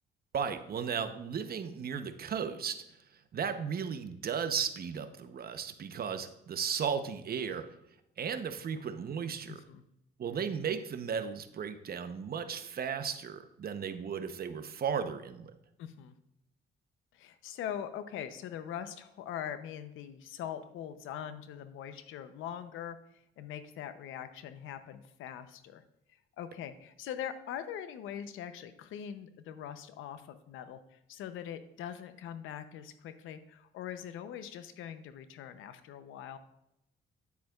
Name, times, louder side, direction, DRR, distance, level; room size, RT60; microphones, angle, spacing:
voice 1, 0.3-2.8 3.3-7.6 8.2-9.6 10.2-15.5, right 7 dB, 50° right, 9 dB, 0.8 m, -35 dB
voice 2, 9.5-9.8 15.8-16.1 17.1-25.8 26.4-36.4, left 9 dB, 85° left, 11 dB, 0.7 m, -42 dB
9.4 x 8.3 x 2.4 m, 0.83 s
cardioid pair, 90°, 20 cm